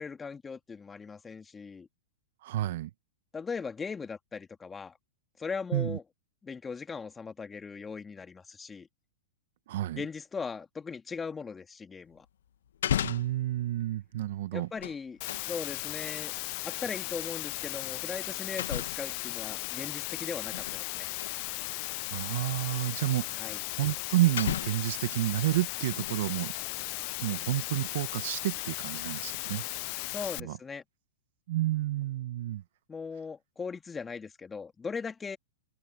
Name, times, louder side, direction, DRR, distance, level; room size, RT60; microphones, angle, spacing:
voice 1, 0.0-1.9 3.3-5.0 5.4-6.0 6.4-8.9 10.0-12.3 14.5-15.2 15.5-16.3 16.6-21.1 23.4-23.6 30.1-30.8 32.9-35.4, left 5 dB, 15° left, 2.3 m, -39 dB
voice 2, 2.4-2.9 5.7-6.0 9.7-10.0 13.0-14.7 22.1-26.5 27.2-29.6 30.4-30.6 31.5-32.6, right 15 dB, 60° right, 1.9 m, -30 dB
sound 1, 12.1-12.2 12.7-13.5 14.6-15.5 17.1-17.3 18.6-19.2 20.3-20.8 21.2-21.4 22.3-22.4 23.7-23.8 24.4-25.0 25.8-26.4 26.7-26.9, left 10 dB, 75° left, 2.0 m, -34 dB
Water, 15.2-30.4, left 31 dB, 50° left, 0.4 m, -36 dB
open air
hypercardioid pair, 110°, 0 cm